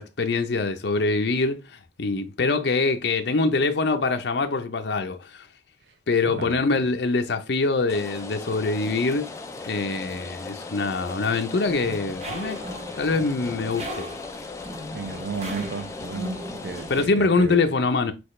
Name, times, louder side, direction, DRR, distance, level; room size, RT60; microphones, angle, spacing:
voice 1, 0.0-5.5 6.1-9.3 9.6-12.6 13.0-14.1 16.9-18.1, left 3 dB, 65° left, 0.6 m, -24 dB
voice 2, 6.2-6.6 14.9-17.6, right 5 dB, 65° right, 0.4 m, -34 dB
Rain, 7.9-17.0, left 3 dB, 15° left, 0.4 m, -38 dB
sound 1, 11.6-17.1, equal, 35° right, 0.9 m, -38 dB
6.0 x 2.3 x 3.1 m
head